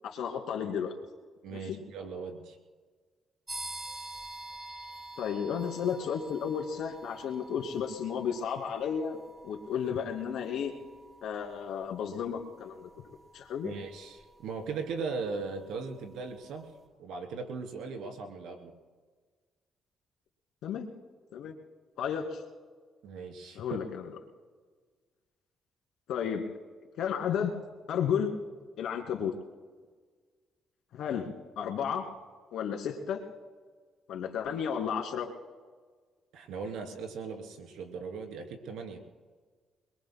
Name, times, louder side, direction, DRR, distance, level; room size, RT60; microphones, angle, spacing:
voice 1, 0.0-1.0 1.5-1.8 5.2-9.2 9.4-10.7 11.2-12.9 13.3-13.7 20.6-20.9 21.3-21.5 22.0-22.4 23.6-24.1 26.1-26.4 27.0-27.5 27.9-28.4 28.8-29.3 30.9-32.1 32.5-33.2 34.1-35.3, left 7 dB, 80° left, 3 dB, 2.5 m, -33 dB
voice 2, 1.4-2.6 13.6-16.7 17.0-18.7 23.0-23.6 36.3-39.0, right 4 dB, 85° right, 3 dB, 3.0 m, -38 dB
sound 1, 3.5-16.0, right 2 dB, 15° right, 6.5 m, -48 dB
29.0 x 22.0 x 2.2 m, 1.5 s
cardioid pair, 90°, 0 cm